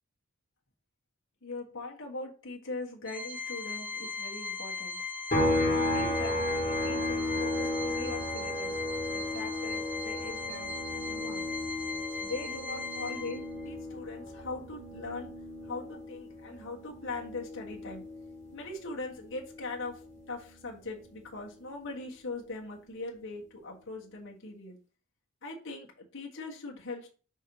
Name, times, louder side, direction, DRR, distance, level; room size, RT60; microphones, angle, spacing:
voice 1, 1.4-5.0 5.7-8.8 9.1-11.5 12.2-13.4 13.6-15.3 15.6-18.1 18.5-20.0 20.3-24.8 25.4-27.2, left 3 dB, 65° left, 0 dB, 1.5 m, -41 dB
Organ, 3.1-13.7, left 4 dB, 5° right, 0.5 m, -38 dB
sound 1, 5.3-18.9 19.2-21.4, left 1 dB, 35° left, 2.0 m, -34 dB
6.1 x 3.0 x 5.4 m, 0.38 s
head